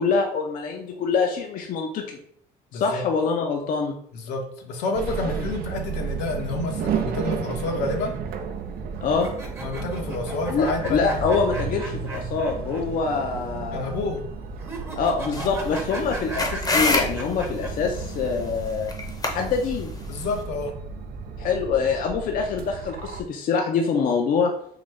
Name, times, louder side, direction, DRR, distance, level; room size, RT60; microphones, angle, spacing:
voice 1, 0.0-2.2 2.7-4.0 5.2-5.3 9.0-9.3 10.5-14.0 15.0-18.9 19.3-19.9 21.4-24.5, left 5 dB, 55° left, 3 dB, 0.5 m, -25 dB
voice 2, 4.1-8.2 9.6-11.2 13.7-14.2 20.1-20.7, left 2 dB, 85° left, 2 dB, 0.8 m, -29 dB
sound 1, 4.9-23.2, right 6 dB, 60° right, 0.5 m, -33 dB
sound 2, 9.1-12.8 13.1-13.2 14.6-17.7, right 2 dB, 15° right, 0.8 m, -37 dB
sound 3, 15.3-20.4, left 3 dB, 20° left, 0.7 m, -28 dB
3.8 x 2.6 x 3.2 m, 0.64 s
cardioid pair, 110°, 17 cm